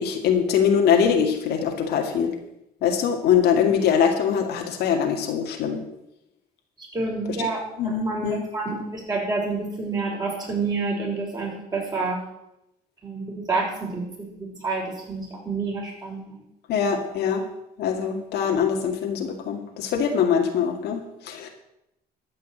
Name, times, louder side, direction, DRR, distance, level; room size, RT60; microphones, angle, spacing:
voice 1, 0.0-2.3 2.8-5.8 7.4-7.5 7.8-8.4 16.7-17.4 17.8-21.5, left 7 dB, 80° left, 2 dB, 2.3 m, -23 dB
voice 2, 6.8-12.2 13.0-14.0 14.3-16.4, right 3 dB, 25° right, -3 dB, 6.3 m, -28 dB
13.5 x 5.7 x 9.4 m, 0.84 s
cardioid pair, 110°, 17 cm